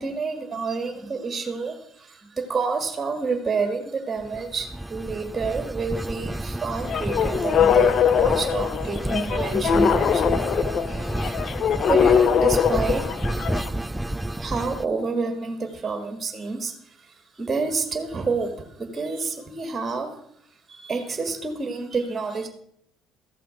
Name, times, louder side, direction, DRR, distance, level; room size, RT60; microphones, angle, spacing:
voice 1, 0.0-11.3 11.9-13.0 13.9-14.0 14.4-20.2 20.7-22.5, right 4 dB, 25° right, 5 dB, 1.8 m, -29 dB
sound 1, 4.2-14.9, right 1 dB, 10° right, 0.4 m, -30 dB
sound 2, 6.8-13.7, left 7 dB, 50° left, 0.6 m, -22 dB
14.5 x 5.7 x 5.0 m, 0.72 s
hypercardioid pair, 60°, 0 cm